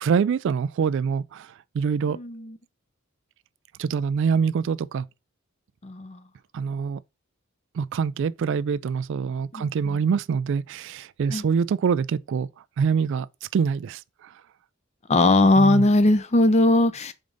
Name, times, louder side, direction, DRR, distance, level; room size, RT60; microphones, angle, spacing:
voice 1, 0.0-2.2 3.8-5.1 6.5-7.0 7.7-12.5 12.8-13.3 13.5-14.3 15.6-15.9, right 6 dB, 60° right, 0.3 m, -25 dB
voice 2, 2.1-2.5 5.8-6.2 9.5-10.0 11.3-11.5 15.1-17.1, left 2 dB, 30° left, 0.6 m, -20 dB
5.1 x 3.8 x 5.1 m
head